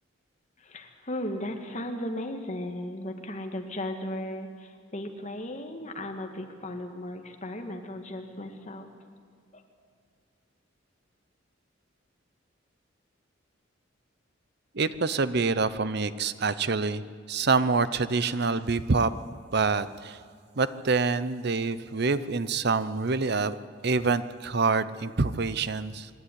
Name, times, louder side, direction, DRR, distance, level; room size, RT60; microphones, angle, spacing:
voice 1, 0.6-8.9 9.5-9.6, left 1 dB, 35° left, 4 dB, 1.8 m, -36 dB
voice 2, 14.7-19.1 19.5-20.2 20.6-23.6 23.8-26.1, right 4 dB, 55° right, 14 dB, 0.8 m, -26 dB
26.0 x 11.0 x 9.9 m, 2.1 s
head